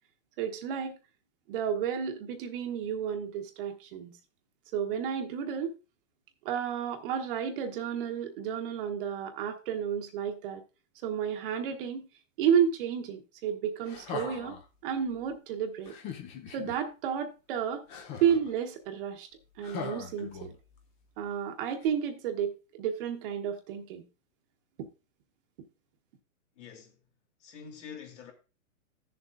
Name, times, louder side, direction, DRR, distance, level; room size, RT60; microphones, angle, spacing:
voice 1, 0.4-0.9 1.5-4.2 4.7-5.7 6.4-10.6 11.0-12.1 12.4-14.6 14.8-15.9 16.5-17.8 18.2-19.3 19.6-20.5 21.2-24.0, right 8 dB, 40° right, 1.2 m, -31 dB
sound 1, 13.8-14.7 15.9-16.8 17.9-18.5 19.6-20.8 21.8-21.9, left 6 dB, 15° left, 0.5 m, -40 dB
voice 2, 26.6-27.0 27.4-28.3, left 7 dB, 55° left, 2.9 m, -46 dB
15.0 x 6.8 x 2.5 m
hypercardioid pair, 145°, 42 cm